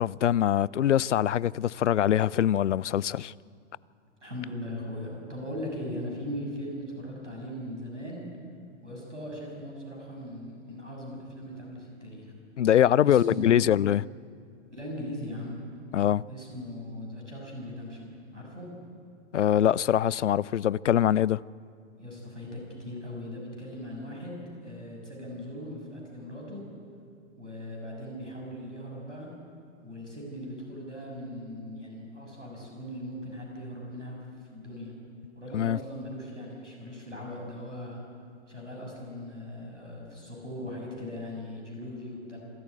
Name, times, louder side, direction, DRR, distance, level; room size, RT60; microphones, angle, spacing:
voice 1, 0.0-3.3 12.6-14.1 15.9-16.2 19.3-21.4 35.5-35.8, left 10 dB, 75° left, 0.5 m, -23 dB
voice 2, 4.2-8.2 8.8-12.3 13.0-13.5 14.7-15.6 16.3-18.7 22.0-26.6 27.4-29.3 29.8-34.2 34.5-34.9 35.4-38.0 38.5-42.4, left 1 dB, 90° right, 7.1 m, -39 dB
26.0 x 13.5 x 9.3 m
figure-of-eight pair, 100°, 36 cm